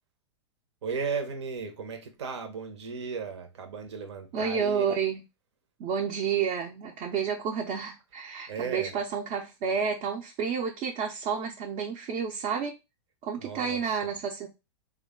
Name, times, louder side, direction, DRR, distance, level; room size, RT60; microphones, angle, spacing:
voice 1, 0.8-4.9 8.5-8.9 13.4-14.1, right 5 dB, 75° right, 0.9 m, -35 dB
voice 2, 4.3-5.2 5.8-12.8 13.2-14.5, right 6 dB, 40° right, 0.6 m, -30 dB
3.5 x 2.3 x 3.6 m
hypercardioid pair, 120°, 15 cm